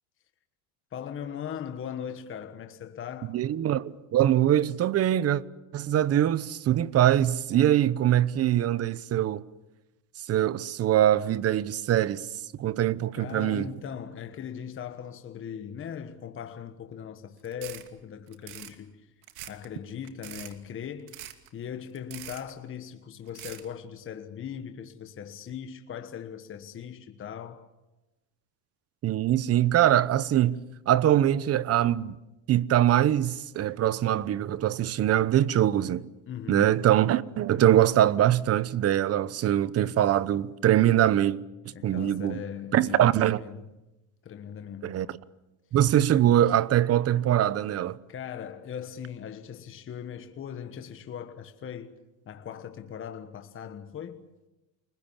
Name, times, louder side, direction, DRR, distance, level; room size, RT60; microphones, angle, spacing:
voice 1, 0.9-3.4 13.2-19.1 19.5-21.2 21.5-27.7 36.3-36.7 41.7-43.6 44.2-45.0 48.1-52.0 52.3-54.2, left 8 dB, 30° left, 1.4 m, -39 dB
voice 2, 3.3-5.4 5.7-9.4 10.3-12.3 12.6-13.7 29.0-32.2 32.5-36.0 36.5-41.4 41.8-42.4 42.7-43.4 44.8-45.2 45.7-48.0, right 12 dB, 35° right, 0.9 m, -23 dB
sound 1, 17.4-17.9 18.3-18.7 19.2-19.7 20.0-20.5 21.1-21.5 22.0-22.5 23.3-23.7, right 13 dB, 85° right, 2.7 m, -43 dB
30.0 x 21.0 x 7.3 m
supercardioid pair, 125°, 43 cm